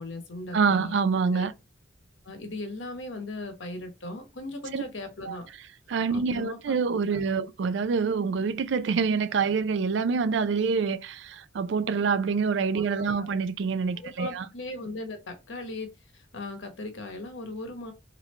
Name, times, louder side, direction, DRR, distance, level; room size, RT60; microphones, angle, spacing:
voice 1, 0.0-1.0 1.3-1.5 2.2-5.5 6.1-7.2 12.7-13.3 13.9-17.9, left 2 dB, 80° left, 1.0 m, -38 dB
voice 2, 0.5-1.5 4.7-4.8 5.3-5.4 5.9-14.5, right 5 dB, 65° right, 0.4 m, -26 dB
3.7 x 3.2 x 3.2 m
head